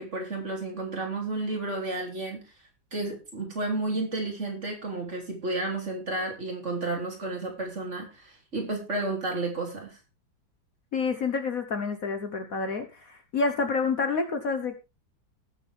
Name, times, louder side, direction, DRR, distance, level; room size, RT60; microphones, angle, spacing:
voice 1, 0.0-2.4 2.9-10.0, right 2 dB, 40° right, 1 dB, 3.5 m, -32 dB
voice 2, 10.9-14.8, left 4 dB, 50° left, 6 dB, 1.5 m, -28 dB
19.0 x 7.5 x 3.5 m, 0.28 s
omnidirectional pair, 2.0 m